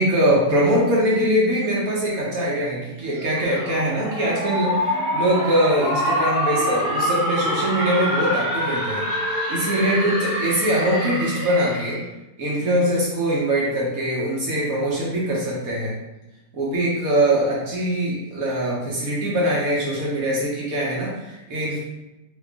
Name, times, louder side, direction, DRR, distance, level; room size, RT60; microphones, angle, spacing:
voice 1, 0.0-9.1 9.5-12.0 12.4-16.0 16.5-21.8, right 1 dB, 60° right, -5 dB, 1.0 m, -22 dB
sound 1, 3.1-12.0, equal, 5° right, 0.5 m, -26 dB
2.8 x 2.6 x 3.5 m, 0.98 s
omnidirectional pair, 1.9 m